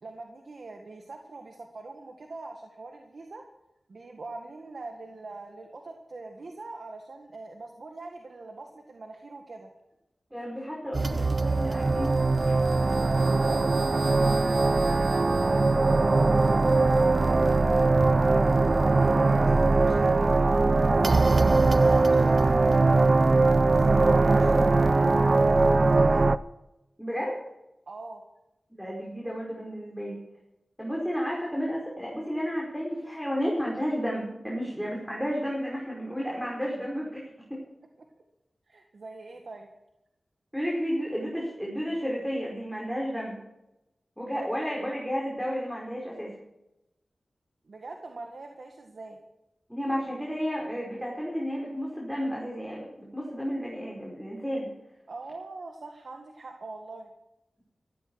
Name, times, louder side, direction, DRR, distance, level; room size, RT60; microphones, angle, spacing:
voice 1, 0.0-3.4 3.9-9.7 13.4-13.8 15.1-16.1 16.9-21.0 21.4-23.2 23.6-26.3 27.9-28.2 38.7-39.7 44.3-44.6 47.7-49.2 55.1-57.1, right 3 dB, 75° right, 3 dB, 1.8 m, -43 dB
voice 2, 10.3-12.2 12.4-12.6 27.0-27.4 28.8-30.2 30.8-37.6 40.5-43.4 44.2-46.3 49.7-54.7, equal, ahead, -3 dB, 5.1 m, -32 dB
sound 1, 10.9-26.4, right 3 dB, 50° right, 0.6 m, -21 dB
15.0 x 14.5 x 4.8 m, 0.92 s
cardioid pair, 55°, 0 cm